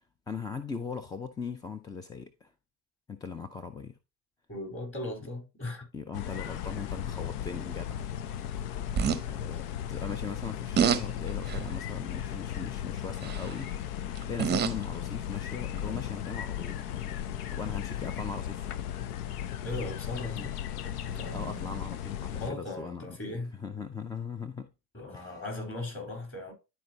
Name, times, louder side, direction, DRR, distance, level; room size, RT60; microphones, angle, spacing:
voice 1, 0.3-2.5 3.1-4.0 5.9-8.1 9.2-17.2 17.5-18.7 20.2-20.5 21.3-24.7 25.1-25.4, left 5 dB, 10° left, 0.4 m, -39 dB
voice 2, 4.5-5.9 19.6-20.5 21.0-21.8 22.3-23.5 24.9-26.5, left 2 dB, 25° left, 4.0 m, -38 dB
sound 1, 6.1-22.5, left 10 dB, 70° left, 0.7 m, -36 dB
sound 2, 8.9-9.2 10.8-11.0 11.5-11.8 13.2-13.5 14.2-14.8 15.8-15.9, right 8 dB, 20° right, 0.7 m, -27 dB
11.5 x 4.5 x 2.8 m
hypercardioid pair, 75°, 48 cm